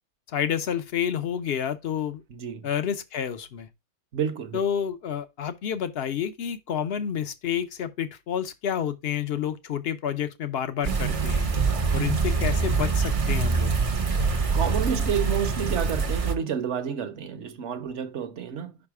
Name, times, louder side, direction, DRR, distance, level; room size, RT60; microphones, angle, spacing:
voice 1, 0.3-2.2 2.6-3.7 4.5-11.5 11.9-13.7, left 8 dB, 55° left, 0.7 m, -29 dB
voice 2, 2.3-2.7 4.1-4.6 14.5-18.8, right 7 dB, 55° right, 1.0 m, -30 dB
sound 1, 10.8-16.3, right 5 dB, 35° right, 0.6 m, -24 dB
5.6 x 4.9 x 4.7 m
omnidirectional pair, 1.6 m